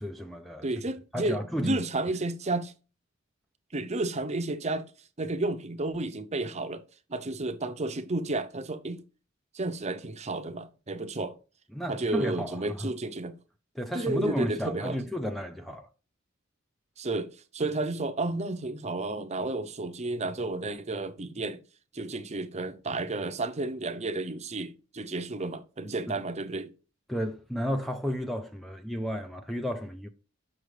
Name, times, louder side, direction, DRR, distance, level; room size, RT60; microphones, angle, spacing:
voice 1, 0.0-0.7 1.1-1.8 11.7-12.9 13.8-15.9 26.1-26.2 27.1-30.1, equal, ahead, 0.5 m, -32 dB
voice 2, 0.6-2.7 3.7-4.8 5.2-6.8 7.1-9.0 9.5-11.3 11.9-13.3 13.9-15.0 17.0-21.6 21.9-26.7, right 2 dB, 35° right, 0.7 m, -32 dB
6.3 x 6.2 x 3.3 m
head